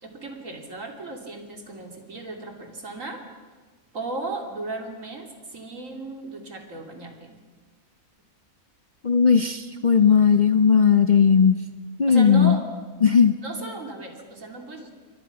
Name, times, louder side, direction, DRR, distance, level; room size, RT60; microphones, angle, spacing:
voice 1, 0.0-3.2 3.9-7.4 12.1-12.7 13.4-14.9, right 2 dB, 60° right, 3 dB, 3.3 m, -35 dB
voice 2, 9.0-11.6 12.0-12.6 13.0-13.3, left 6 dB, 40° left, 8 dB, 0.7 m, -17 dB
28.0 x 23.5 x 6.0 m, 1.4 s
omnidirectional pair, 1.5 m